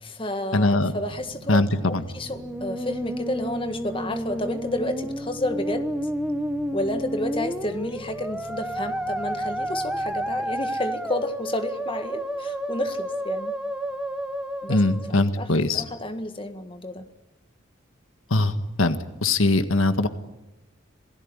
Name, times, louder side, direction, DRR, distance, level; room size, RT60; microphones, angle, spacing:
voice 1, 0.0-1.6 2.1-5.9 6.7-13.5 14.6-14.8 15.1-17.1, left 1 dB, 25° left, 8 dB, 1.7 m, -31 dB
voice 2, 0.5-0.9 1.5-2.0 14.7-15.8 18.3-18.5 18.8-20.1, left 2 dB, 90° left, 9 dB, 1.7 m, -21 dB
sound 1, 0.5-12.1, left 1 dB, 75° right, 5.9 m, -46 dB
Musical instrument, 2.2-15.2, right 1 dB, 5° right, 1.4 m, -31 dB
27.5 x 18.5 x 10.0 m, 1.0 s
head